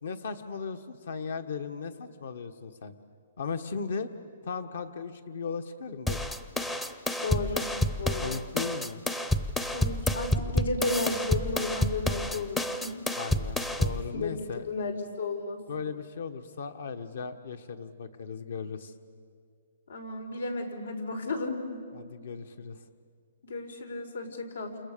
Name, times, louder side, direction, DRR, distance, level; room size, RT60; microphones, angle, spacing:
voice 1, 0.0-2.9 3.4-4.1 4.4-6.3 8.1-9.0 10.4-10.5 13.1-14.6 15.7-18.9 21.9-22.8, left 5 dB, 65° left, 9 dB, 1.5 m, -37 dB
sound 1, 6.1-14.1, left 1 dB, 5° left, 0.6 m, -29 dB
voice 2, 7.2-8.4 9.6-13.0 14.1-15.7 19.9-21.9 23.4-24.8, left 3 dB, 85° left, 6 dB, 4.5 m, -34 dB
29.0 x 28.5 x 6.9 m, 2.1 s
hypercardioid pair, 170°, 0 cm